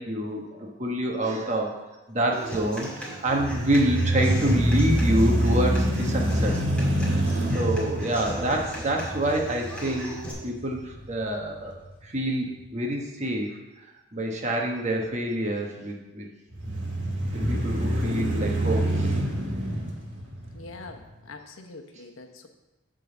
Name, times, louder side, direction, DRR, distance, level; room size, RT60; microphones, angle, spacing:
voice 1, 0.0-1.7 2.1-6.6 7.5-10.1 10.4-11.7 12.0-13.5 14.1-16.3 16.7-16.8 17.5-19.1, right 1 dB, 35° right, 1 dB, 1.1 m, -27 dB
Human voice / Acoustic guitar, 2.3-10.3, right 1 dB, 5° left, 1.7 m, -38 dB
sound 1, 3.3-11.4 11.9-12.0 16.5-21.0, right 1 dB, 70° right, 1.8 m, -26 dB
voice 2, 20.5-22.5, left 3 dB, 85° left, 4 dB, 0.9 m, -44 dB
10.0 x 3.8 x 6.9 m, 1.1 s
head